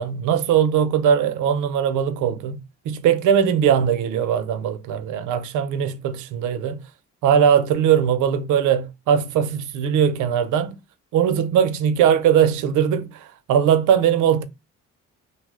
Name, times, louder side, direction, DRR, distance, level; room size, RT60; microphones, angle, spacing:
voice 1, 0.0-2.6 2.8-6.8 7.2-10.8 11.1-14.4, right 8 dB, 85° right, 0.5 m, -20 dB
2.7 x 2.0 x 3.5 m
cardioid pair, 90°, 30 cm